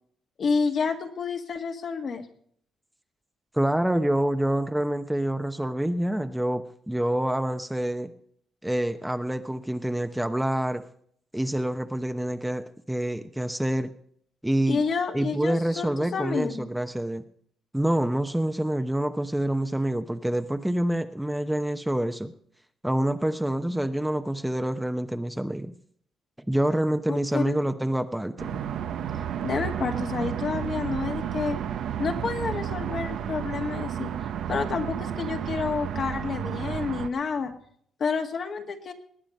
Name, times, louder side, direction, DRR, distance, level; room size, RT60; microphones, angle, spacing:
voice 1, 0.4-2.3 14.7-16.7 27.1-27.6 29.4-31.6 32.0-34.1 34.5-37.5 38.0-38.9, left 5 dB, 50° left, 5 dB, 1.8 m, -29 dB
voice 2, 3.5-8.1 8.6-10.8 11.3-13.9 14.4-14.8 15.1-17.2 17.7-22.3 22.8-25.7 26.5-28.6, right 1 dB, 5° right, 7 dB, 0.8 m, -27 dB
sound 1, 28.4-37.1, right 9 dB, 75° right, 0.9 m, -32 dB
20.0 x 8.8 x 5.4 m, 0.64 s
cardioid pair, 90°, 0 cm